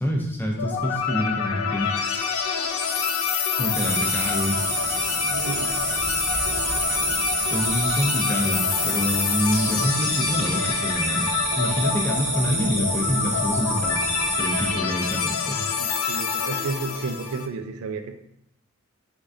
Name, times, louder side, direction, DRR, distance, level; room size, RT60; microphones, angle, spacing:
voice 1, 0.0-1.9 3.6-5.1 7.5-14.0 14.4-15.6, equal, 10° left, 0 dB, 0.3 m, -26 dB
sound 1, 0.6-17.5, left 6 dB, 80° left, 0.4 m, -27 dB
sound 2, 3.7-14.7, right 1 dB, 10° right, 0.7 m, -27 dB
voice 2, 5.3-5.7 7.6-7.7 15.8-18.2, right 4 dB, 80° right, 8 dB, 0.3 m, -32 dB
3.5 x 3.2 x 2.5 m, 0.77 s
head